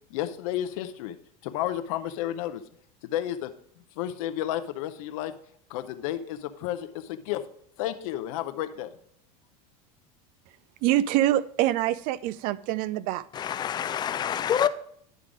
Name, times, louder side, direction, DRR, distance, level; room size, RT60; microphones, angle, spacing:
voice 1, 0.1-1.2 1.4-2.6 3.0-3.5 4.0-5.3 5.7-7.4 7.8-8.9, left 12 dB, 75° left, 0.6 m, -31 dB
voice 2, 10.8-13.2, right 13 dB, 50° right, 0.4 m, -25 dB
voice 3, 13.3-14.7, left 9 dB, 25° left, 0.4 m, -26 dB
10.0 x 3.8 x 4.9 m
supercardioid pair, 130°, 18 cm